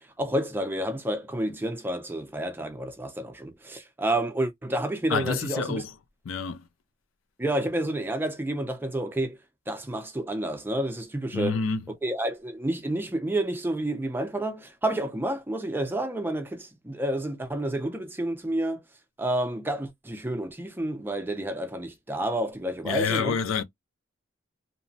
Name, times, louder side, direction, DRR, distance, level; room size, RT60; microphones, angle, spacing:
voice 1, 0.2-5.8 7.4-9.4 9.7-11.6 11.9-18.8 19.2-23.4, right 1 dB, 10° right, 0.4 m, -30 dB
voice 2, 5.1-6.0 6.3-6.6 11.3-11.9 22.8-23.6, left 5 dB, 90° left, 0.4 m, -28 dB
2.9 x 2.1 x 2.6 m
head